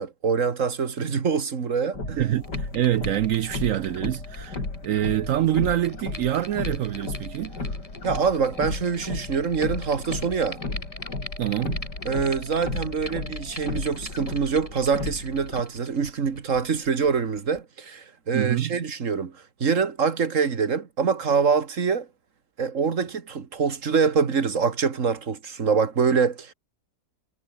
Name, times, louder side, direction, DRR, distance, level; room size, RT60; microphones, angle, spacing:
voice 1, 0.0-2.2 8.0-10.6 12.1-22.1 22.6-26.5, right 5 dB, 50° right, 2.0 m, -25 dB
sound 1, 1.9-15.6, left 3 dB, 80° left, 5.4 m, -34 dB
voice 2, 2.0-7.7 11.4-11.8 18.3-18.8, right 12 dB, 65° right, 0.8 m, -26 dB
sound 2, 2.3-17.6, left 1 dB, 20° left, 3.9 m, -44 dB
omnidirectional pair, 1.8 m